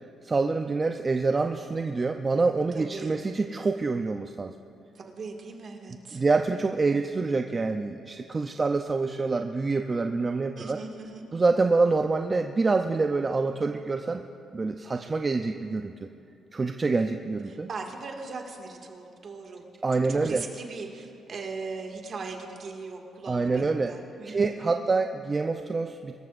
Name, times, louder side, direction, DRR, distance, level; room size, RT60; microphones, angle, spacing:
voice 1, 0.2-4.5 6.1-10.8 11.3-14.2 14.5-15.9 16.5-17.7 19.8-20.4 23.3-23.9 24.3-26.1, right 3 dB, 30° right, 5 dB, 0.6 m, -26 dB
voice 2, 2.8-3.2 4.9-6.2 10.5-11.3 17.5-19.6 19.9-24.8, right 4 dB, 50° right, 2 dB, 2.0 m, -39 dB
23.5 x 14.0 x 2.5 m, 2.7 s
cardioid pair, 90°, 0 cm